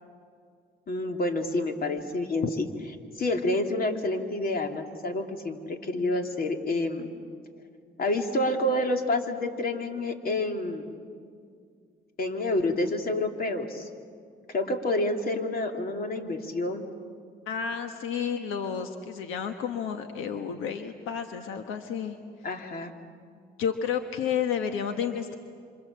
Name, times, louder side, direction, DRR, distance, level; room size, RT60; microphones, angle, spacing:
voice 1, 0.9-2.7 3.2-7.1 8.0-10.9 12.2-13.9 14.5-16.9 22.4-22.9, left 2 dB, 50° left, 4 dB, 3.0 m, -28 dB
voice 2, 17.5-22.2 23.6-25.4, left 7 dB, 90° left, 6 dB, 1.4 m, -31 dB
27.0 x 27.0 x 7.5 m, 2.2 s
cardioid pair, 90°, 20 cm